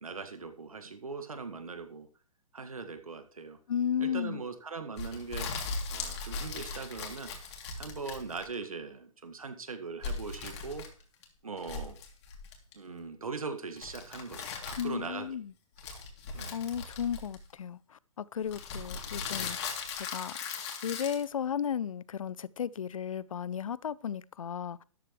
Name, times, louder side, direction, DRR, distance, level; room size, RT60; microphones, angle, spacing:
voice 1, 0.0-2.1 2.5-3.6 4.0-5.5 5.9-10.9 11.4-12.0 12.7-15.3 15.9-16.0 16.3-16.6, right 4 dB, 80° right, 1.8 m, -40 dB
voice 2, 3.7-4.4 14.8-15.5 16.5-19.6 20.1-20.4 20.8-24.8, left 8 dB, 70° left, 0.5 m, -34 dB
sound 1, 5.0-8.6 10.0-11.2 11.6-12.7 13.8-15.1 15.8-17.6 18.5-21.2, left 4 dB, 50° left, 2.9 m, -39 dB
13.0 x 11.0 x 3.2 m
figure-of-eight pair, 120°, 18 cm